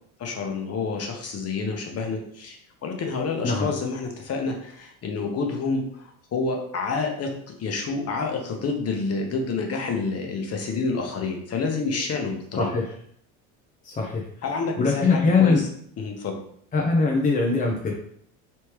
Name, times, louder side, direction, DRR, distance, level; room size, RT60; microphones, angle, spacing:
voice 1, 0.2-7.3 7.6-12.7 14.4-15.6 16.0-16.4, left 4 dB, 35° left, 2 dB, 0.9 m, -28 dB
voice 2, 12.6-12.9 13.8-14.2 14.8-15.6 16.7-17.9, left 4 dB, 20° left, -1 dB, 0.6 m, -21 dB
3.2 x 3.2 x 3.0 m, 0.65 s
supercardioid pair, 95°, 42 cm